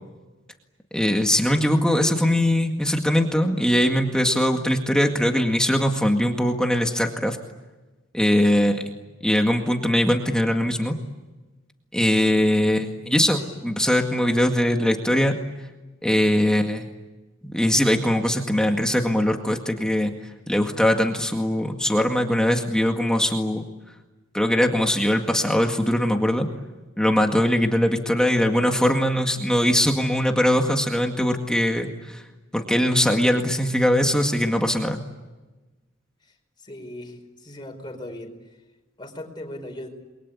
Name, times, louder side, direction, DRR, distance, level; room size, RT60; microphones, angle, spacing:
voice 1, 0.9-7.4 8.1-8.9 9.2-10.9 11.9-15.3 16.0-16.9 17.4-20.1 20.5-23.6 24.3-26.5 27.0-32.2 32.5-35.0, equal, 5° left, 3 dB, 2.0 m, -21 dB
voice 2, 36.6-38.3 39.0-39.9, left 1 dB, 20° left, 3 dB, 5.1 m, -38 dB
29.5 x 23.0 x 8.6 m, 1.2 s
head